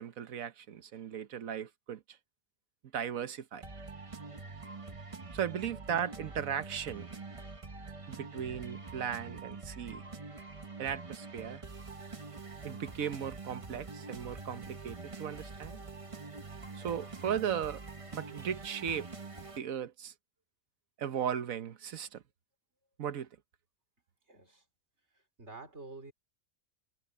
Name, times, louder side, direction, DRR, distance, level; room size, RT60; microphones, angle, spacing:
voice 1, 0.0-2.2 2.9-3.6 5.3-7.1 8.1-10.0 10.8-11.6 12.6-15.8 16.7-17.8 18.1-19.1 19.6-20.1 21.0-22.2 23.0-23.3, right 8 dB, 85° right, 1.4 m, -37 dB
sound 1, 3.6-19.6, right 3 dB, 25° right, 1.1 m, -45 dB
voice 2, 24.3-24.6 25.4-26.1, right 3 dB, 55° right, 4.6 m, -48 dB
omnidirectional pair, 1.4 m